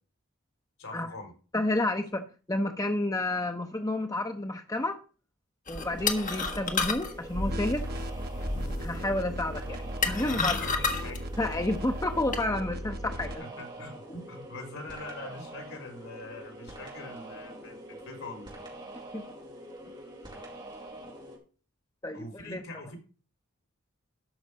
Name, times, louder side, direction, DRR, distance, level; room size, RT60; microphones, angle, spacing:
voice 1, 0.8-1.3 10.2-11.2 13.4-18.5 22.1-23.0, left 2 dB, 70° left, 4 dB, 4.5 m, -43 dB
voice 2, 1.5-5.0 5.7-7.8 8.8-10.7 11.4-13.4 19.1-19.2 22.0-22.6, left 1 dB, 15° left, 6 dB, 0.7 m, -30 dB
sound 1, 5.7-12.4, left 4 dB, 35° left, 1.5 m, -33 dB
sound 2, 5.8-21.4, right 1 dB, 20° right, 4.0 m, -45 dB
sound 3, 7.3-13.3, equal, 45° right, 0.9 m, -36 dB
13.0 x 5.9 x 5.2 m, 0.37 s
head